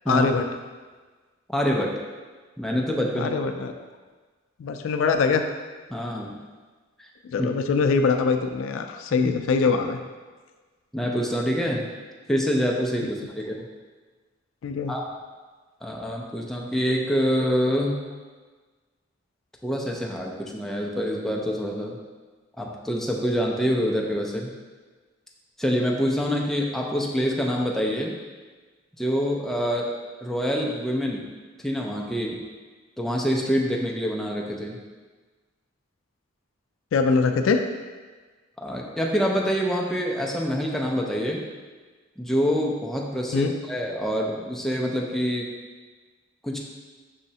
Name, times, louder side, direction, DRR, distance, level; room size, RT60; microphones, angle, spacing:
voice 1, 0.1-0.4 3.2-3.7 4.6-5.4 7.3-10.0 14.6-14.9 36.9-37.6 43.3-43.5, left 4 dB, 75° left, 6 dB, 0.3 m, -23 dB
voice 2, 1.5-1.9 2.6-3.3 5.9-6.4 7.0-7.1 7.4-7.5 9.2-9.3 10.9-11.9 12.3-13.6 14.9-15.0 15.8-18.0 19.6-22.0 22.6-24.5 25.6-28.1 29.0-29.9 30.2-31.3 31.6-32.4 33.0-34.8 38.6-41.4 42.2-45.5 46.4-46.6, equal, ahead, -2 dB, 0.4 m, -26 dB
5.5 x 3.1 x 2.8 m, 1.4 s
head